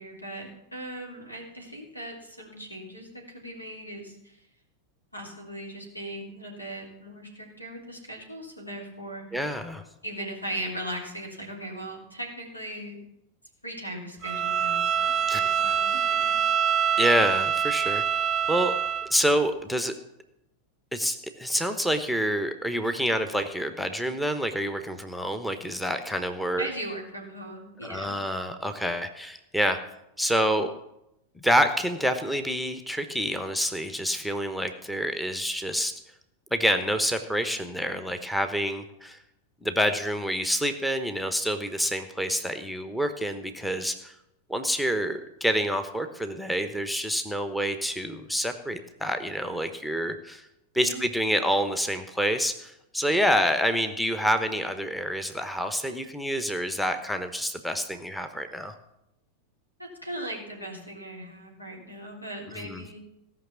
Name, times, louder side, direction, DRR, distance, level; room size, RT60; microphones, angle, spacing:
voice 1, 0.0-4.4 5.1-9.4 10.0-13.0 13.6-16.4 26.6-28.2 50.8-51.1 59.8-63.0, right 1 dB, 85° left, 0 dB, 3.5 m, -38 dB
voice 2, 9.3-9.8 15.3-15.4 17.0-18.7 19.1-19.9 20.9-26.7 27.8-29.8 30.2-30.7 31.4-35.9 36.5-39.2 39.6-44.1 44.5-50.5 50.7-58.7 62.6-62.8, equal, 5° left, 8 dB, 1.0 m, -27 dB
Bowed string instrument, 14.2-19.1, right 8 dB, 25° right, 0.6 m, -25 dB
17.0 x 5.9 x 7.1 m, 0.85 s
figure-of-eight pair, 90°, 0 cm